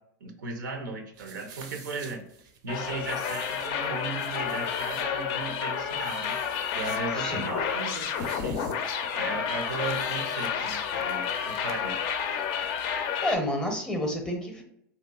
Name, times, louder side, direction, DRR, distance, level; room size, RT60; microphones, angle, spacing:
voice 1, 0.2-6.4 6.7-8.6 9.1-11.9, right 3 dB, 90° right, 4 dB, 0.6 m, -36 dB
sound 1, 1.1-11.8, right 6 dB, 45° right, 0.5 m, -50 dB
sound 2, 2.7-13.4, left 7 dB, 50° left, 0.4 m, -30 dB
voice 2, 7.2-7.5 13.2-14.6, left 1 dB, 5° left, 2 dB, 0.6 m, -29 dB
2.8 x 2.2 x 2.2 m, 0.74 s
hypercardioid pair, 110°, 10 cm